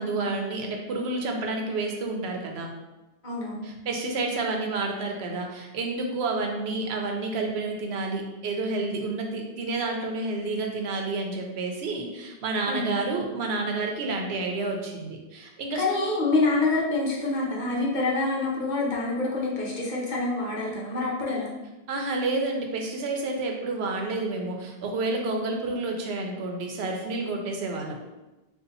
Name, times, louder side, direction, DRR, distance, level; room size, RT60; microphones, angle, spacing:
voice 1, 0.0-2.7 3.6-15.8 21.9-28.0, right 3 dB, 90° right, 2 dB, 0.9 m, -29 dB
voice 2, 3.2-3.7 12.7-12.9 15.8-21.5, left 2 dB, 50° left, -3 dB, 0.9 m, -26 dB
2.7 x 2.5 x 3.9 m, 1.0 s
omnidirectional pair, 1.0 m